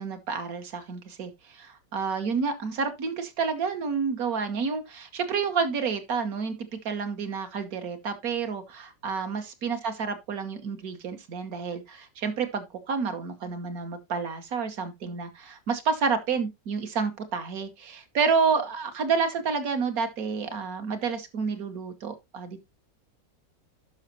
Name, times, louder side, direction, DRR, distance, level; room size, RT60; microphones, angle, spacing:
voice 1, 0.0-6.5 6.8-22.6, right 5 dB, 55° right, 1.5 m, -29 dB
11.5 x 5.7 x 2.8 m
omnidirectional pair, 1.9 m